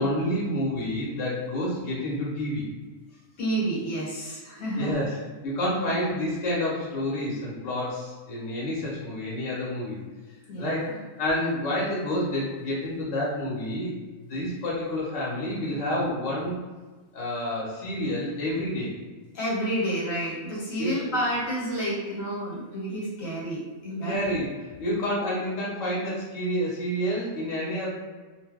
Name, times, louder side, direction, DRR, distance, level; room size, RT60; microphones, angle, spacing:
voice 1, 0.0-2.7 4.8-10.0 10.6-14.0 14.3-16.6 17.1-18.9 20.8-21.1 24.0-24.5 24.8-27.9, left 1 dB, 65° left, -6 dB, 1.2 m, -29 dB
voice 2, 3.4-4.9 10.5-11.0 19.3-24.2, right 1 dB, 85° left, -5 dB, 1.3 m, -30 dB
2.6 x 2.0 x 3.5 m, 1.3 s
omnidirectional pair, 1.4 m